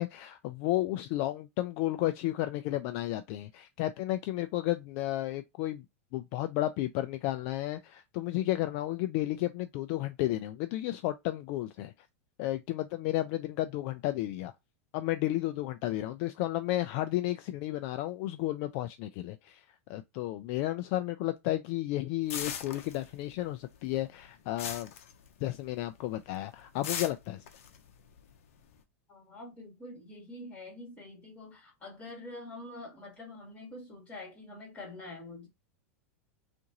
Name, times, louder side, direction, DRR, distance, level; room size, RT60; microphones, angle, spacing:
voice 1, 0.0-5.8 6.1-11.9 12.4-14.5 14.9-19.6 19.9-24.9 25.4-27.4, left 15 dB, 55° left, 0.3 m, -32 dB
sound 1, 22.3-23.4 23.7-25.7 26.1-26.4 26.8-28.7, left 8 dB, 75° left, 0.7 m, -39 dB
voice 2, 29.1-35.5, left 2 dB, 20° left, 2.3 m, -46 dB
3.7 x 2.5 x 2.9 m
hypercardioid pair, 120°, 8 cm